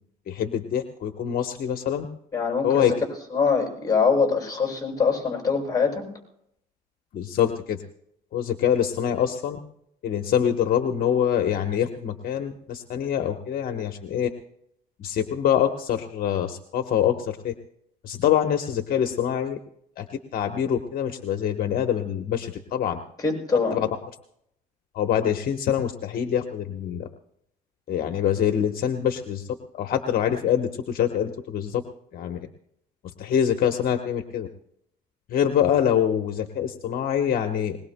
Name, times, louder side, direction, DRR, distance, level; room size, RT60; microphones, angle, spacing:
voice 1, 0.3-2.1 2.6-2.9 7.1-7.8 8.3-9.6 10.0-14.3 15.0-17.5 18.0-19.6 20.0-20.1 20.3-23.0 23.7-23.9 24.9-27.1 27.9-29.5 29.7-31.8 32.1-32.5 33.2-34.5 35.3-37.8, left 9 dB, 60° left, 5 dB, 1.1 m, -25 dB
voice 2, 2.3-2.9 3.3-6.0 23.2-23.8, left 5 dB, 20° left, 1 dB, 6.7 m, -23 dB
21.0 x 21.0 x 2.2 m, 0.73 s
cardioid pair, 110°, 17 cm